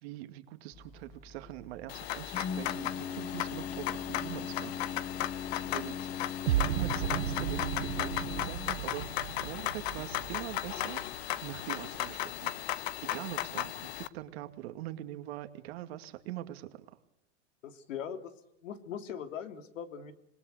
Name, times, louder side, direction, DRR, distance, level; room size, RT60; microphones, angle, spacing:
voice 1, 0.0-4.8 5.7-6.0 6.5-12.5 13.0-16.9, right 14 dB, 55° right, 8 dB, 2.4 m, -43 dB
Organ, 0.7-10.9, left 6 dB, 20° left, 1.2 m, -41 dB
sound 1, 1.9-14.1, left 14 dB, 55° left, 1.2 m, -36 dB
sound 2, 6.5-12.5, right 14 dB, 90° right, 0.9 m, -36 dB
voice 2, 17.6-18.3 18.6-20.1, left 8 dB, 80° left, 9 dB, 3.1 m, -40 dB
26.5 x 21.0 x 8.2 m, 0.74 s
supercardioid pair, 155°, 38 cm